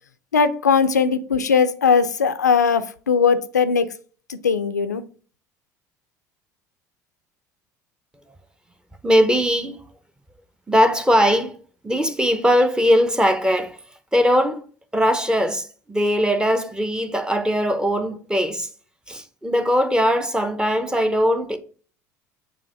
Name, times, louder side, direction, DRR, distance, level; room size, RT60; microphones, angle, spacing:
voice 1, 0.3-3.9 4.3-5.0, left 6 dB, 90° left, 0.4 m, -19 dB
voice 2, 9.0-9.8 10.7-11.6 11.8-13.8 14.1-14.6 14.9-18.7 19.1-21.6, equal, 10° right, 0.8 m, -20 dB
6.9 x 3.0 x 4.9 m
hypercardioid pair, 65°, 9 cm